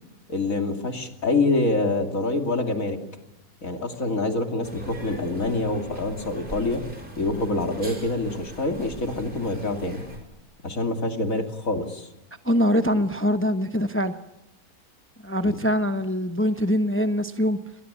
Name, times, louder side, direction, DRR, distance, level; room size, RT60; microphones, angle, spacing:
voice 1, 0.3-3.0 3.6-6.8 7.2-10.0 10.6-12.1 15.4-15.6, left 2 dB, 60° left, 4 dB, 3.0 m, -26 dB
sound 1, 4.6-10.2, right 1 dB, 30° right, 5.9 m, -41 dB
voice 2, 12.4-14.2 15.2-17.6, equal, 10° left, 9 dB, 0.8 m, -23 dB
29.0 x 20.5 x 9.9 m, 0.94 s
omnidirectional pair, 1.6 m